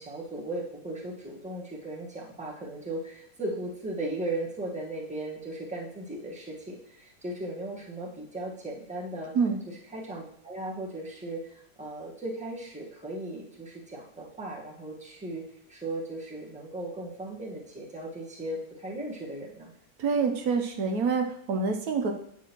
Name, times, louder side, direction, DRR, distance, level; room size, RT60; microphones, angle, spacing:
voice 1, 0.0-9.4 9.7-15.4 15.7-19.7, right 1 dB, 5° right, -3 dB, 1.2 m, -37 dB
voice 2, 20.0-22.1, right 5 dB, 75° right, 5 dB, 1.2 m, -26 dB
9.1 x 6.1 x 3.0 m, 0.75 s
omnidirectional pair, 1.6 m